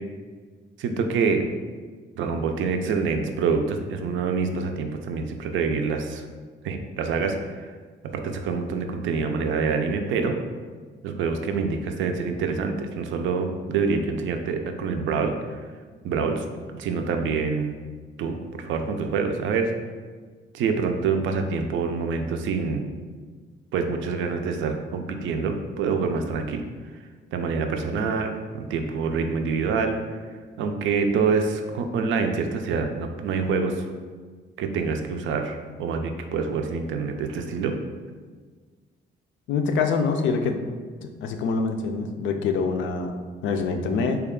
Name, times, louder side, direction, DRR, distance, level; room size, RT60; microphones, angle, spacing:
voice 1, 0.8-1.5 2.2-6.2 6.6-7.7 8.1-10.4 11.0-15.6 16.0-16.4 16.7-17.7 18.2-19.7 20.5-22.9 23.7-26.6 27.3-30.0 30.6-33.9 34.6-37.8, right 5 dB, 75° right, 5 dB, 0.4 m, -26 dB
voice 2, 39.5-40.6 41.0-43.1 43.4-44.2, left 4 dB, 75° left, 6 dB, 0.4 m, -25 dB
3.4 x 2.3 x 3.6 m, 1.5 s
cardioid pair, 90°, 20 cm